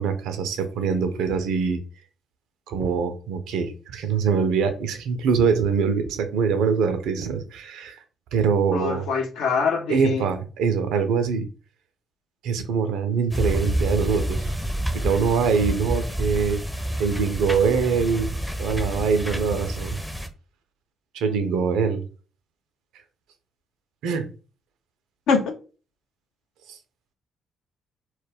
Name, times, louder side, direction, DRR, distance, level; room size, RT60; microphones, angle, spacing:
voice 1, 0.0-1.8 2.7-8.0 8.3-9.0 9.9-11.5 12.4-14.5 15.0-16.6 17.0-18.3 18.6-20.0 21.1-22.0 24.0-24.3 26.7-26.8, right 6 dB, 70° right, 0.4 m, -23 dB
voice 2, 8.7-10.2 25.3-25.5, left 5 dB, 65° left, 0.5 m, -24 dB
sound 1, 13.3-20.3, equal, ahead, 0.5 m, -28 dB
2.2 x 2.1 x 3.3 m
hypercardioid pair, 45°, 0 cm